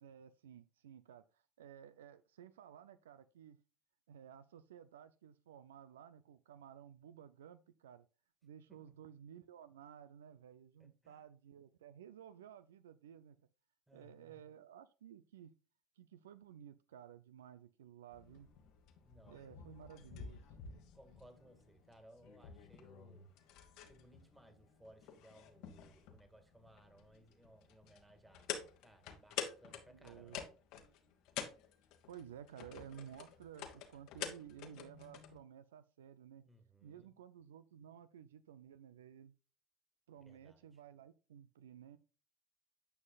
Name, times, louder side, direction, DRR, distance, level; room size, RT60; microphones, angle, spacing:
voice 1, 0.0-3.6 4.1-8.1 8.4-13.4 13.9-15.6 16.0-18.5 19.3-20.5 29.9-30.4 32.1-36.4 36.8-39.3 40.1-42.0, right 9 dB, 90° right, 0.3 m, -55 dB
voice 2, 10.8-11.2 13.9-14.4 19.0-19.5 20.9-23.3 23.8-30.5 36.4-37.1 40.2-40.7, right 1 dB, 10° right, 1.9 m, -63 dB
sound 1, 18.1-35.4, left 9 dB, 70° left, 1.3 m, -49 dB
9.5 x 5.6 x 2.3 m
hypercardioid pair, 75°, 0 cm